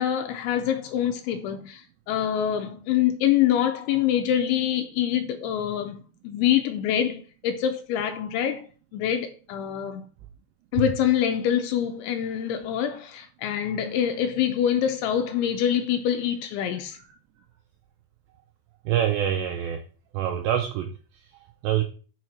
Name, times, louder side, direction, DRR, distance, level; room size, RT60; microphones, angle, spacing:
voice 1, 0.0-8.7 8.9-10.0 10.7-17.0, left 10 dB, 85° left, 2.9 m, -25 dB
voice 2, 18.9-19.8 20.1-20.9 21.6-21.8, right 10 dB, 85° right, 2.4 m, -25 dB
7.1 x 4.3 x 6.2 m
omnidirectional pair, 5.8 m